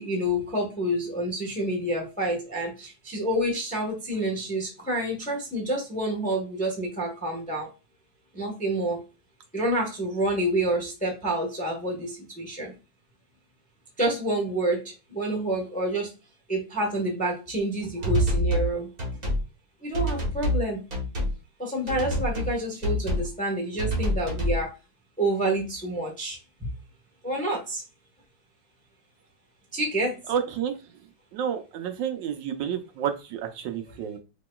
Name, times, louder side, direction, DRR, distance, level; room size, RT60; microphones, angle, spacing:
voice 1, 0.0-7.7 8.3-9.0 9.5-12.7 14.0-16.1 16.5-18.9 19.8-20.8 21.6-24.8 25.2-26.7 27.2-27.8 29.7-30.2, right 1 dB, 5° left, -1 dB, 0.7 m, -28 dB
sound 1, 18.0-18.7 19.0-19.4 19.9-20.6 20.9-21.3 21.9-22.5 22.8-23.3 23.8-24.6, equal, 50° right, 1.8 m, -27 dB
voice 2, 30.3-30.7 31.3-34.2, right 8 dB, 80° right, 7 dB, 1.3 m, -30 dB
5.0 x 3.0 x 2.3 m, 0.29 s
omnidirectional pair, 2.0 m